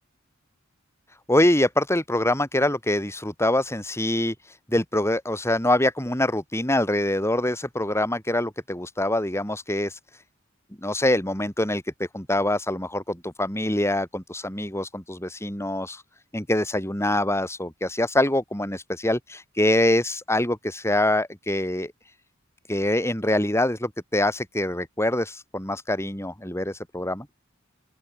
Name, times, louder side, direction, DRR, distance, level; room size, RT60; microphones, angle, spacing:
voice 1, 1.3-10.0 10.8-16.0 16.3-21.9 22.7-27.3, left 1 dB, 15° left, 6.0 m, -24 dB
open air
head